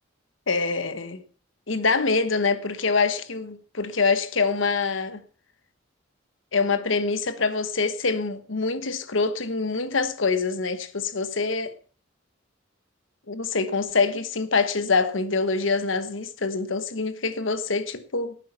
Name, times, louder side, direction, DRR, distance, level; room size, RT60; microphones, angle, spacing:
voice 1, 0.5-1.2 1.7-5.2 6.5-11.7 13.3-18.4, left 4 dB, 75° left, 1.2 m, -25 dB
12.0 x 9.0 x 5.6 m
head